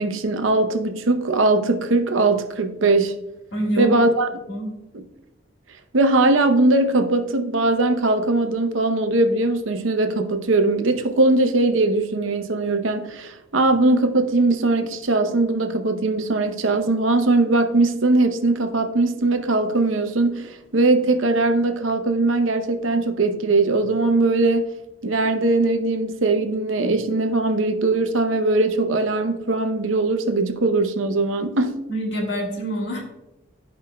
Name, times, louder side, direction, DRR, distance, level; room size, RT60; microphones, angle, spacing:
voice 1, 0.0-3.2 3.8-4.3 4.9-5.0 5.9-24.7 25.0-31.7, right 2 dB, 80° right, 0.7 m, -20 dB
voice 2, 3.5-4.0 4.5-4.7 31.9-33.0, equal, 65° left, 1.7 m, -25 dB
13.0 x 5.1 x 2.2 m
head